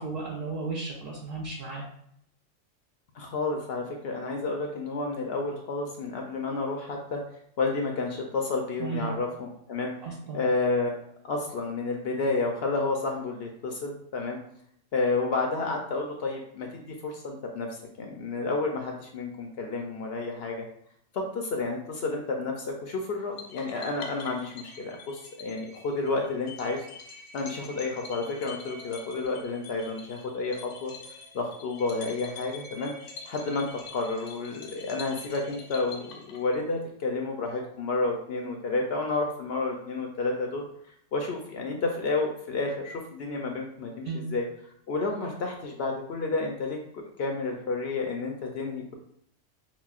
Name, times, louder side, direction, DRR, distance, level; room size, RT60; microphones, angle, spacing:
voice 1, 0.0-1.8 8.8-9.1 10.0-10.4 44.0-44.2, right 4 dB, 55° right, -4 dB, 0.8 m, -34 dB
voice 2, 3.1-7.2 7.6-9.9 10.3-11.0 11.2-14.4 14.9-17.7 18.0-20.6 21.1-26.9 27.3-30.9 31.3-32.9 33.3-33.7 33.9-40.7 41.1-44.5 44.9-48.9, left 3 dB, 65° left, 2 dB, 0.7 m, -30 dB
sound 1, 23.4-36.8, left 4 dB, 85° left, 1.1 m, -46 dB
5.9 x 2.1 x 2.4 m, 0.70 s
omnidirectional pair, 1.3 m